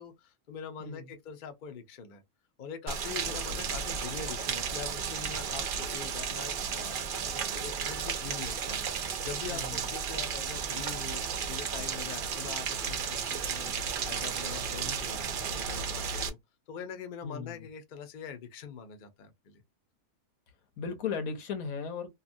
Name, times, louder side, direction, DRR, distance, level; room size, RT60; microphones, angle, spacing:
voice 1, 0.0-2.2 2.6-16.4 16.7-19.6, left 7 dB, 50° left, 0.6 m, -43 dB
voice 2, 0.8-1.1 3.3-3.6 9.5-9.9 17.2-17.7 20.8-22.1, left 6 dB, 80° left, 1.2 m, -37 dB
Rain, 2.9-16.3, right 6 dB, 65° right, 0.5 m, -34 dB
2.8 x 2.3 x 2.5 m
omnidirectional pair, 1.5 m